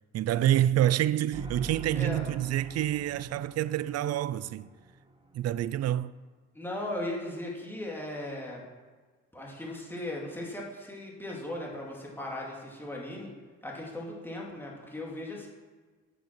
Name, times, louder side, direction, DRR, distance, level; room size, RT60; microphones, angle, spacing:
voice 1, 0.1-4.7 5.3-6.1, right 12 dB, 55° right, 0.4 m, -27 dB
sound 1, 1.3-5.4, right 3 dB, 15° right, 1.1 m, -44 dB
voice 2, 1.9-2.3 6.5-8.6 9.3-13.3 13.6-15.5, left 1 dB, 5° left, 2.5 m, -37 dB
8.7 x 6.4 x 6.0 m
cardioid pair, 90°, 30 cm